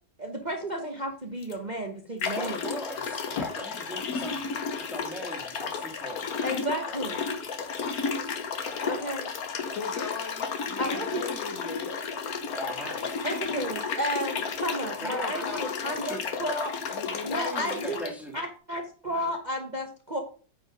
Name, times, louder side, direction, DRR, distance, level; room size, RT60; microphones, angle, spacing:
voice 1, 0.2-2.6 6.4-7.2 8.8-9.3 10.8-11.2 13.2-16.7 17.2-20.2, equal, 30° right, 3 dB, 1.0 m, -32 dB
sound 1, 1.4-1.5 2.2-18.1, left 5 dB, 55° left, 1.5 m, -33 dB
voice 2, 2.4-4.4 4.9-6.3 6.9-7.0 12.5-13.1 15.0-15.5 16.0-16.2 17.5-18.4, equal, ahead, 1 dB, 1.9 m, -39 dB
voice 3, 9.7-11.9 15.1-16.6 16.9-17.9, left 5 dB, 85° left, 6 dB, 2.0 m, -38 dB
9.3 x 4.8 x 5.0 m, 0.40 s
omnidirectional pair, 2.0 m